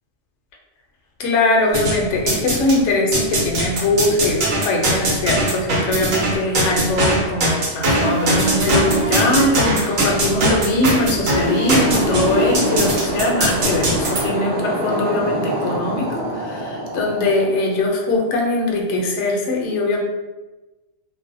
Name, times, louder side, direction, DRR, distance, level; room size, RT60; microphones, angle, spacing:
voice 1, 1.2-20.0, left 2 dB, 70° left, -1 dB, 0.8 m, -21 dB
sound 1, 1.7-2.8 3.1-14.2, right 1 dB, 85° right, 1.1 m, -20 dB
sound 2, 11.7-18.1, right 1 dB, 65° right, 0.9 m, -26 dB
2.5 x 2.1 x 2.5 m, 1.1 s
omnidirectional pair, 1.3 m